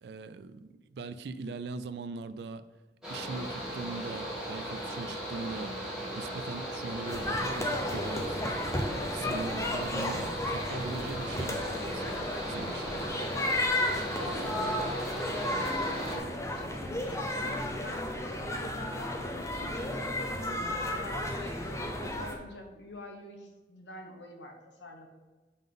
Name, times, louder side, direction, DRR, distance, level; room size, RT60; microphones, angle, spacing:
voice 1, 0.0-2.7 3.1-5.8 6.2-8.4 9.1-12.2 12.5-13.0, right 4 dB, 65° right, 12 dB, 0.3 m, -40 dB
Mechanical fan, 3.0-16.2, right 1 dB, 5° right, 1.4 m, -37 dB
sound 1, 7.0-22.3, left 1 dB, 15° left, 0.6 m, -33 dB
voice 2, 14.2-25.1, left 1 dB, 75° left, 3 dB, 1.0 m, -46 dB
5.4 x 3.8 x 5.3 m, 1.2 s
head